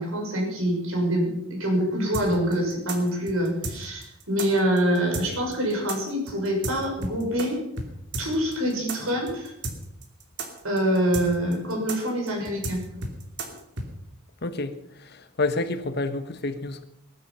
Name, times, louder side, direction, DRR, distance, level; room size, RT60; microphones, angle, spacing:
voice 1, 0.0-7.6 8.2-9.5 10.6-12.8, equal, 80° right, 1 dB, 6.1 m, -25 dB
sound 1, 2.1-7.5 7.8-13.9, right 2 dB, 60° right, 2.8 m, -33 dB
voice 2, 14.4-14.7 15.0-16.8, left 2 dB, 50° left, 9 dB, 1.3 m, -28 dB
20.0 x 12.0 x 5.6 m, 0.80 s
head